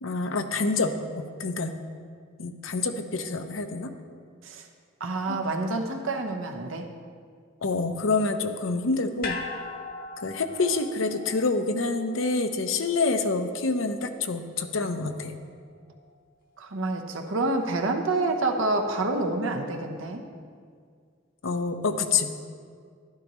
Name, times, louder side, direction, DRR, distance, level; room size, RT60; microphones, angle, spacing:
voice 1, 0.0-1.7 2.4-3.9 5.3-5.4 7.6-9.4 10.2-15.3 21.4-22.3, left 3 dB, 75° left, 7 dB, 0.8 m, -27 dB
voice 2, 5.0-6.9 16.6-20.3, right 2 dB, 75° right, 4 dB, 1.0 m, -28 dB
sound 1, 9.2-13.6 13.9-14.0, left 4 dB, 45° left, 0.9 m, -39 dB
12.0 x 11.5 x 3.1 m, 2.1 s
head